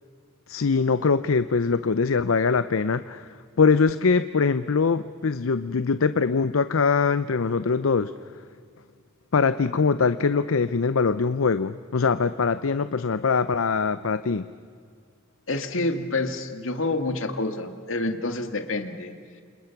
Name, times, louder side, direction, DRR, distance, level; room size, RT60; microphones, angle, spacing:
voice 1, 0.5-3.3 3.6-8.1 9.3-14.5, left 5 dB, 90° left, 13 dB, 0.6 m, -22 dB
voice 2, 15.5-19.1, left 2 dB, 75° left, 7 dB, 2.0 m, -28 dB
29.0 x 27.5 x 5.9 m, 2.2 s
head